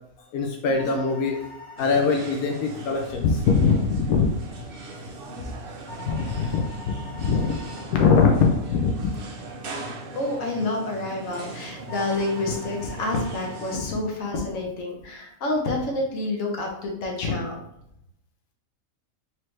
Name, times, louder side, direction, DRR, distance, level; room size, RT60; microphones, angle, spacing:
voice 1, 0.3-1.4 1.8-4.4 5.4-5.5 6.0-7.6 7.9-9.1, left 5 dB, 90° left, 1 dB, 1.1 m, -22 dB
sound 1, 0.7-1.9 5.9-7.9 11.9-13.9, left 3 dB, 25° left, 0.9 m, -43 dB
sound 2, 1.8-13.8, right 2 dB, 55° right, 0.7 m, -39 dB
voice 2, 10.1-17.6, left 2 dB, 70° left, 0 dB, 1.2 m, -28 dB
4.1 x 3.0 x 3.2 m, 0.78 s
omnidirectional pair, 1.5 m